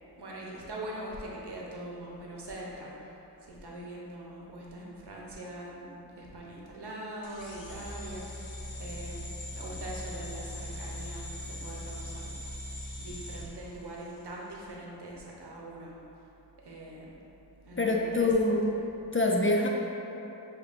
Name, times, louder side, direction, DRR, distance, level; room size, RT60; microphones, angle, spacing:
voice 1, 0.2-12.3 13.0-16.0 16.6-17.1 17.6-18.6, right 1 dB, 65° right, -3 dB, 0.9 m, -42 dB
sound 1, 7.2-14.3, left 1 dB, 85° left, 0.8 m, -40 dB
voice 2, 17.8-18.6 19.1-19.7, left 2 dB, 30° left, 0 dB, 0.4 m, -25 dB
7.0 x 2.9 x 2.5 m, 3.0 s
cardioid pair, 50°, 43 cm